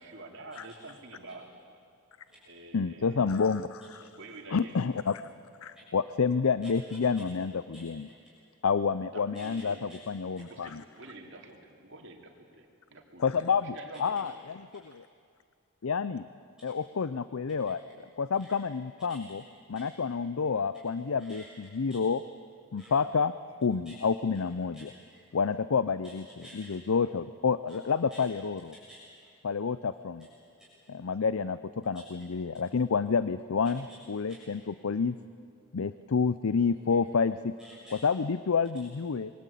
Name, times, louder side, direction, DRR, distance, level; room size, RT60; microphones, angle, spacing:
voice 1, 0.0-1.5 2.5-3.4 4.2-5.0 9.0-9.8 10.4-14.3, right 2 dB, 55° right, 2 dB, 2.9 m, -48 dB
voice 2, 2.7-3.8 4.5-5.2 5.6-8.1 8.6-10.8 13.2-14.3 15.8-16.3 16.6-17.8 18.2-19.4 19.7-22.2 22.7-23.3 23.6-24.9 25.3-26.3 26.5-28.7 29.4-30.3 30.9-31.6 31.8-35.2 35.7-37.5 38.0-39.3, left 5 dB, 70° left, 14 dB, 0.5 m, -29 dB
voice 3, 6.6-7.3 7.7-8.2 9.3-10.2 16.6-16.7 17.7-17.8 18.4-18.6 19.1-19.2 19.7-20.2 20.8-21.5 21.9-22.0 22.8-22.9 23.8-23.9 24.3-24.4 24.7-25.2 26.0-26.1 26.4-26.7 27.7-27.8 28.1-28.2 28.7-29.3 30.6-30.7 31.9-32.0 33.6-33.7 34.2-34.5 36.9-37.0 37.6-38.0, equal, 5° right, -8 dB, 6.7 m, -52 dB
26.5 x 22.0 x 8.4 m, 2.3 s
head